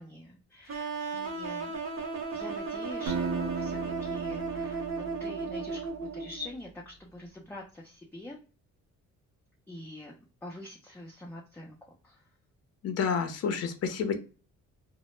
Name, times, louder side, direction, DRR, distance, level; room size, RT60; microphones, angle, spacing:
voice 1, 0.0-1.7 2.3-4.8 5.2-8.4 9.7-10.1 10.4-11.8 12.0-12.3, left 1 dB, 5° left, -1 dB, 0.4 m, -45 dB
sound 1, 0.7-6.5, right 4 dB, 45° right, 0.7 m, -35 dB
Acoustic guitar, 3.1-6.1, right 4 dB, 80° right, 0.6 m, -36 dB
voice 2, 12.8-14.2, left 6 dB, 55° left, 7 dB, 0.5 m, -29 dB
2.0 x 2.0 x 3.0 m, 0.36 s
cardioid pair, 90°, 30 cm